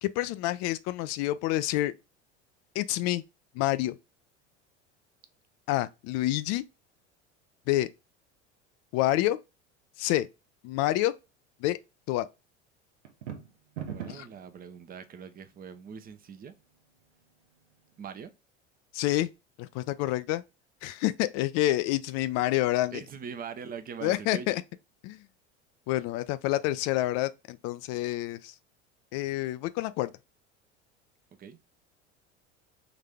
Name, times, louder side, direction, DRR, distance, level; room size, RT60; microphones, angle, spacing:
voice 1, 0.0-1.9 2.8-3.2 3.5-4.0 5.7-6.6 7.7-7.9 8.9-9.4 10.0-10.3 10.6-11.1 11.6-11.8 12.1-12.3 14.1-14.3 18.9-19.3 19.6-20.4 20.8-23.0 24.0-24.6 25.0-25.2 25.9-28.5 29.1-30.1, left 15 dB, 50° left, 0.4 m, -28 dB
sound 1, 13.0-14.4, right 8 dB, 80° right, 0.9 m, -38 dB
voice 2, 13.9-16.5 18.0-18.3 22.9-24.5 31.4-31.6, right 6 dB, 25° right, 0.6 m, -42 dB
3.9 x 2.7 x 3.4 m
hypercardioid pair, 80°, 35 cm